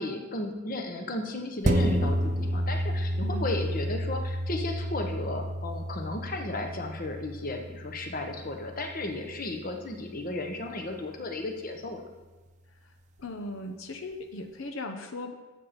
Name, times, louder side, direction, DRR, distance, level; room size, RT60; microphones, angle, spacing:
voice 1, 0.0-12.0, left 2 dB, 45° left, 4 dB, 1.1 m, -34 dB
sound 1, 1.6-10.5 10.9-11.0, equal, 35° right, 0.7 m, -31 dB
voice 2, 13.2-15.3, left 2 dB, 85° left, 6 dB, 0.9 m, -38 dB
12.0 x 7.4 x 4.3 m, 1.2 s
head